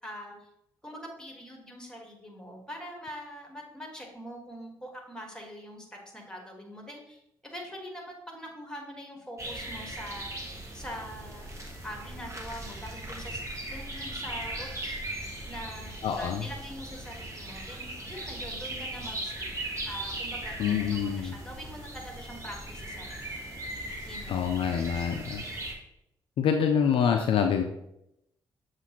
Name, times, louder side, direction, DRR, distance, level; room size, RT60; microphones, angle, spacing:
voice 1, 0.0-0.5 0.8-10.4 10.7-11.5 11.8-13.4 13.7-15.1 15.5-19.3 19.8-20.6 20.9-23.6 24.0-24.6 24.9-25.4, equal, 5° left, 1 dB, 1.5 m, -43 dB
sound 1, 9.4-25.7, right 1 dB, 30° right, 1.1 m, -38 dB
voice 2, 16.0-16.4 20.6-21.3 24.3-25.4 26.4-27.6, left 7 dB, 60° left, 5 dB, 0.4 m, -26 dB
6.8 x 2.5 x 3.0 m, 0.81 s
hypercardioid pair, 40°, 10 cm